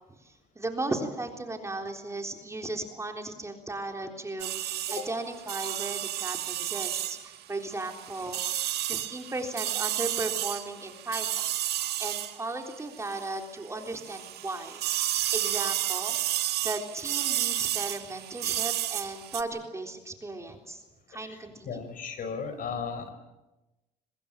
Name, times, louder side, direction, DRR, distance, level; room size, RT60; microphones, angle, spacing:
voice 1, 0.2-11.3 11.7-20.8 21.1-21.8, right 2 dB, 15° right, 3 dB, 3.7 m, -36 dB
sound 1, 4.4-13.4 13.8-19.4, right 13 dB, 75° right, 1.8 m, -32 dB
voice 2, 21.6-23.1, left 6 dB, 55° left, 10 dB, 4.9 m, -35 dB
24.0 x 21.0 x 9.0 m, 1.0 s
cardioid pair, 110°, 17 cm